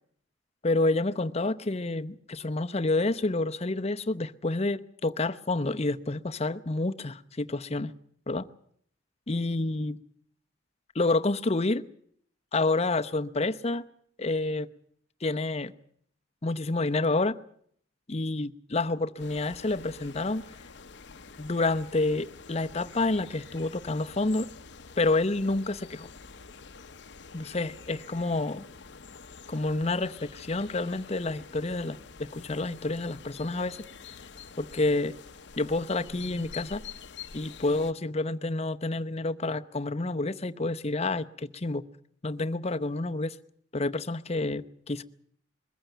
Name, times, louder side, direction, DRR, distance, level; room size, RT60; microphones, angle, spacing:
voice 1, 0.6-7.9 8.3-8.4 9.3-10.0 10.9-11.8 12.5-13.8 14.2-14.7 15.2-15.7 16.4-17.4 18.1-20.4 21.4-24.5 25.0-26.1 27.3-28.6 29.5-32.0 32.3-33.8 34.6-35.1 35.6-36.8 37.3-41.8 42.2-43.4 43.7-45.0, left 2 dB, 35° left, 10 dB, 0.8 m, -28 dB
sound 1, 19.2-37.9, left 5 dB, 65° left, 0.8 m, -47 dB
22.0 x 15.0 x 9.0 m, 0.65 s
head